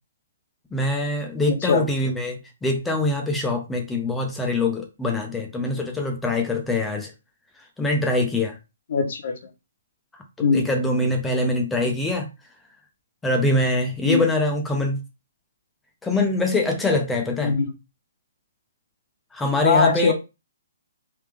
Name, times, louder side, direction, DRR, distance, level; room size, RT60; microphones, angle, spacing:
voice 1, 0.7-7.1 7.8-8.6 10.4-12.3 13.2-15.0 16.0-17.5 19.3-20.1, left 2 dB, 5° left, 2 dB, 0.6 m, -24 dB
voice 2, 1.5-1.8 8.9-9.4 10.4-10.7 14.0-14.2 17.4-17.7 19.6-20.1, left 5 dB, 60° left, 7 dB, 0.9 m, -20 dB
3.4 x 2.7 x 3.3 m, 0.26 s
hypercardioid pair, 145°, 0 cm